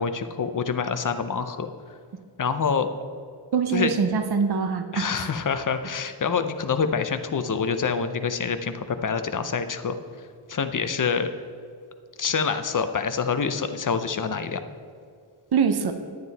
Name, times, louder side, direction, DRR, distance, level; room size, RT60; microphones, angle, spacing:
voice 1, 0.0-1.7 2.4-2.9 3.7-4.0 4.9-10.0 10.5-11.3 12.2-14.6, left 6 dB, 40° left, 9 dB, 0.6 m, -26 dB
voice 2, 3.5-5.3 15.5-15.9, right 5 dB, 50° right, 8 dB, 0.7 m, -23 dB
9.7 x 9.4 x 4.1 m, 2.2 s
wide cardioid pair, 100°, 49 cm